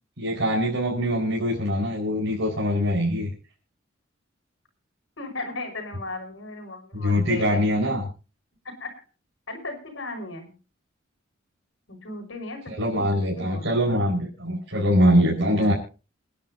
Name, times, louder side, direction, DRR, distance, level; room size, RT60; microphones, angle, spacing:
voice 1, 0.2-3.3 6.9-8.0 12.8-15.7, equal, 70° right, -2 dB, 4.7 m, -23 dB
voice 2, 5.2-7.6 8.6-8.9 9.5-10.5 11.9-13.9 15.5-15.7, left 2 dB, 75° left, 3 dB, 5.7 m, -36 dB
28.5 x 10.5 x 2.7 m, 0.35 s
head